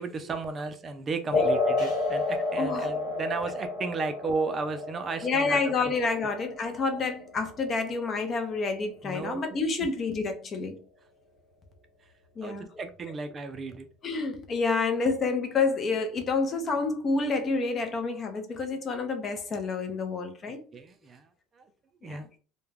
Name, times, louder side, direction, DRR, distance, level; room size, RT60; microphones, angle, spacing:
voice 1, 0.0-5.7 9.0-9.6 12.4-13.9 20.4-21.3 21.5-21.6 22.0-22.3, right 4 dB, 30° right, 0.3 m, -34 dB
sound 1, 1.3-8.3, left 2 dB, 60° left, 1.1 m, -31 dB
voice 2, 2.6-2.9 5.2-10.8 12.4-12.7 14.0-20.7 22.0-22.2, left 4 dB, 35° left, 0.5 m, -28 dB
2.2 x 2.1 x 3.2 m
supercardioid pair, 115°, 0 cm